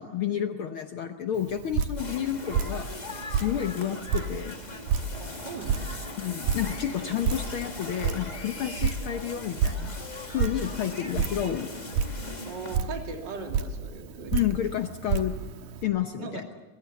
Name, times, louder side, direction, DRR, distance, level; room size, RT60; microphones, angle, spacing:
voice 1, 0.0-2.9 3.3-4.6 6.2-9.9 10.3-11.7 14.3-15.3 15.8-16.4, left 10 dB, 65° left, 7 dB, 1.4 m, -30 dB
Drip, 1.3-15.8, right 6 dB, 90° right, 2.6 m, -32 dB
sound 1, 2.0-12.8, left 2 dB, 20° left, 1.1 m, -40 dB
voice 2, 5.2-6.0 12.4-14.4 16.2-16.4, right 4 dB, 40° right, 2 dB, 3.2 m, -39 dB
22.0 x 21.5 x 7.1 m, 1.2 s
omnidirectional pair, 3.3 m